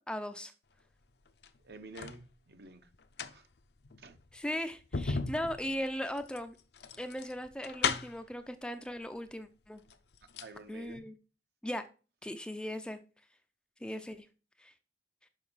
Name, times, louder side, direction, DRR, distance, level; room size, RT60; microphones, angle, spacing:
voice 1, 0.1-0.5 4.3-6.6 7.0-9.8 10.7-11.1 11.6-11.9 12.2-13.0 13.8-14.3 14.6-14.7, equal, 5° left, 0.4 m, -38 dB
sound 1, 1.3-2.2 2.9-8.3 9.3-9.4 9.8-10.6 10.9-11.0, left 5 dB, 60° left, 0.6 m, -37 dB
voice 2, 1.6-2.9 3.3-3.5 4.0-4.2 10.4-11.1, right 3 dB, 60° right, 0.9 m, -50 dB
6.5 x 5.5 x 5.5 m
head